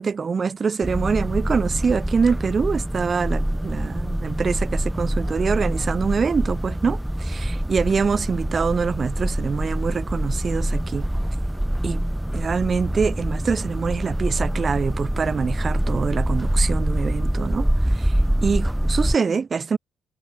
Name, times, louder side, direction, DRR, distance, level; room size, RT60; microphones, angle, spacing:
voice 1, 0.0-11.1 11.8-12.1 12.3-19.8, right 5 dB, 40° right, 1.2 m, -25 dB
sound 1, 0.8-19.2, right 1 dB, 5° right, 0.6 m, -25 dB
cardioid pair, 90°, 0 cm